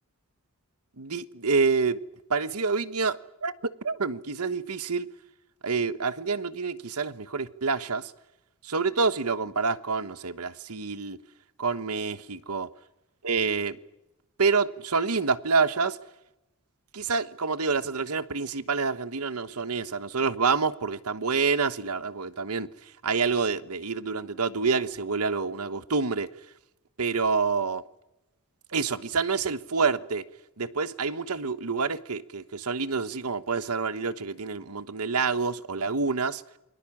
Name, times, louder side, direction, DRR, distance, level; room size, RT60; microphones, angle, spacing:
voice 1, 1.0-2.0 2.3-5.1 5.6-8.1 8.6-11.2 11.6-12.7 13.2-13.8 14.4-16.0 16.9-22.7 23.0-26.3 27.0-27.8 28.7-30.2 30.6-36.4, right 4 dB, 85° right, 1.2 m, -27 dB
28.5 x 24.0 x 7.3 m
head